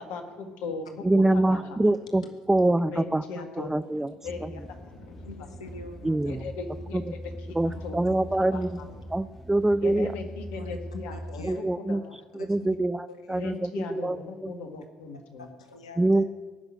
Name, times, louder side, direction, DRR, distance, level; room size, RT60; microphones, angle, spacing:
voice 1, 0.0-1.8 2.9-3.8 4.2-5.3 6.3-7.2 7.8-8.0 8.5-8.6 9.8-12.2 13.4-15.5, left 4 dB, 70° left, 6 dB, 1.7 m, -38 dB
voice 2, 1.0-2.2 2.5-3.2 3.6-4.1 4.4-4.5 6.0-6.5 6.9-7.0 7.6-8.7 9.1-10.1 11.4-12.0 12.3-14.2 14.4-14.5 16.0-16.2, right 2 dB, 10° right, 15 dB, 0.5 m, -24 dB
sound 1, 4.2-11.6, equal, 5° left, 2.4 m, -41 dB
voice 3, 5.2-6.2 7.6-7.9 8.8-9.0 10.5-10.8 11.1-11.6 12.4-12.8 13.1-13.6 15.1-16.2, left 2 dB, 90° left, 6 dB, 1.1 m, -45 dB
17.5 x 6.1 x 9.5 m, 1.4 s
hypercardioid pair, 55°, 3 cm